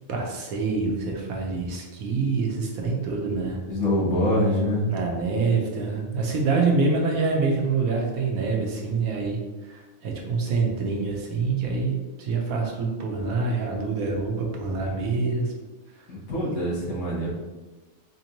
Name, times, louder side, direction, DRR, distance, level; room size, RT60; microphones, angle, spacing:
voice 1, 0.1-3.6 4.9-9.4 9.6-15.5, right 4 dB, 85° right, 0 dB, 1.2 m, -26 dB
voice 2, 3.7-5.0 16.1-17.3, left 1 dB, 85° left, -5 dB, 1.7 m, -24 dB
4.3 x 2.7 x 2.9 m, 1.2 s
omnidirectional pair, 1.5 m